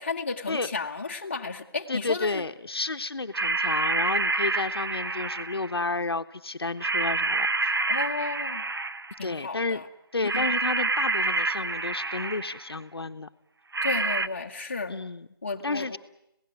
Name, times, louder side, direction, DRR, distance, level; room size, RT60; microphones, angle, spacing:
voice 1, 0.0-2.4 7.9-8.6 9.2-9.9 10.3-10.4 13.8-15.0 15.4-16.0, left 4 dB, 30° left, 2 dB, 1.5 m, -33 dB
voice 2, 1.9-7.7 9.2-9.8 10.1-13.3 14.9-15.3 15.6-16.0, left 3 dB, 85° left, 8 dB, 1.3 m, -31 dB
sound 1, 3.3-5.8 6.8-9.2 10.3-12.7 13.7-14.3, right 3 dB, 70° right, 0.9 m, -28 dB
27.0 x 17.5 x 9.3 m, 0.80 s
figure-of-eight pair, 175°, 13 cm